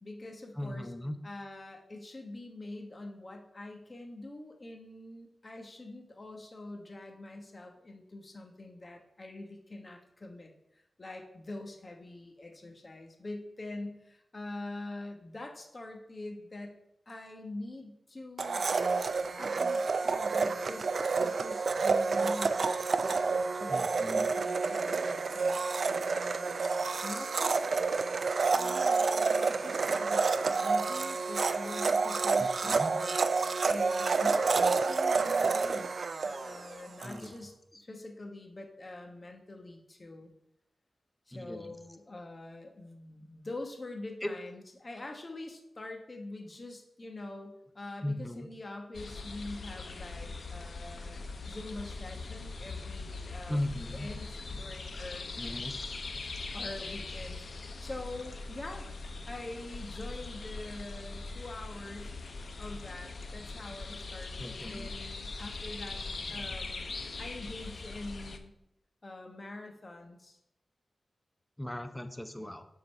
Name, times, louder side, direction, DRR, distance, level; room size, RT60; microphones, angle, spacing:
voice 1, 0.0-0.9 1.2-16.7 17.1-18.6 19.4-20.9 21.2-25.6 26.1-27.6 28.5-35.9 36.2-40.3 41.3-55.3 56.5-57.4 57.8-58.9 59.2-62.1 62.6-66.0 66.3-66.9 67.2-68.5 69.0-70.4, left 2 dB, 40° left, 3 dB, 1.1 m, -44 dB
voice 2, 0.6-1.2 23.7-24.3 32.4-32.9 37.0-37.3 37.7-37.8 41.3-41.7 44.2-44.3 48.0-48.5 53.5-54.1 55.4-55.9 64.4-64.9 71.6-72.7, left 1 dB, 10° left, 8 dB, 0.7 m, -37 dB
Domestic sounds home sounds, 18.4-37.2, right 4 dB, 70° right, 0.4 m, -29 dB
sound 1, 48.9-68.4, left 3 dB, 65° left, 0.7 m, -41 dB
7.5 x 4.0 x 5.4 m, 0.80 s
wide cardioid pair, 80°, 0 cm